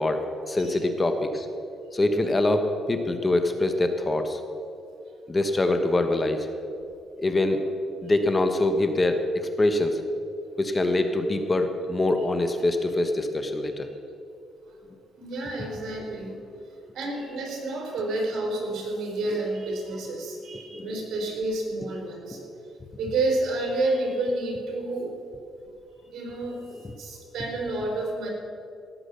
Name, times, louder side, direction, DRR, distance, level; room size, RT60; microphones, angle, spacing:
voice 1, 0.0-1.5 1.9-4.4 5.3-6.5 7.2-7.6 8.0-10.0 10.6-13.9 20.7-21.0 22.3-22.4, left 2 dB, 25° left, 7 dB, 1.2 m, -24 dB
voice 2, 15.2-16.3 16.9-22.4 23.0-25.2 26.1-28.3, right 2 dB, 70° right, 0 dB, 4.0 m, -30 dB
18.0 x 7.4 x 6.8 m, 2.6 s
cardioid pair, 90°, 0 cm